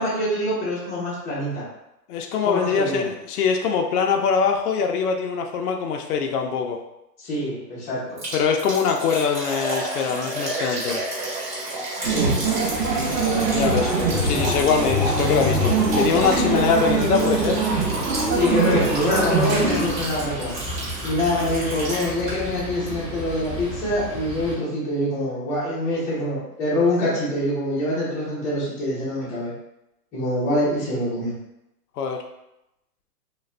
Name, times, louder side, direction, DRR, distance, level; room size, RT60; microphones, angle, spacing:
voice 1, 0.0-1.6 2.4-3.1 7.2-8.2 12.0-12.4 18.3-20.5 21.0-29.5 30.1-31.3, left 1 dB, 15° left, -9 dB, 0.6 m, -25 dB
voice 2, 2.1-6.8 8.3-11.0 13.5-13.9 14.2-17.6 32.0-32.2, left 6 dB, 65° left, 3 dB, 0.6 m, -23 dB
Liquid, 8.2-22.6 22.9-23.0 23.4-23.5, right 1 dB, 30° right, 1.1 m, -31 dB
sound 1, 12.0-19.9, right 3 dB, 80° right, 0.9 m, -23 dB
sound 2, 12.7-24.5, equal, ahead, 1.1 m, -34 dB
2.4 x 2.3 x 3.2 m, 0.89 s
hypercardioid pair, 140°, 50 cm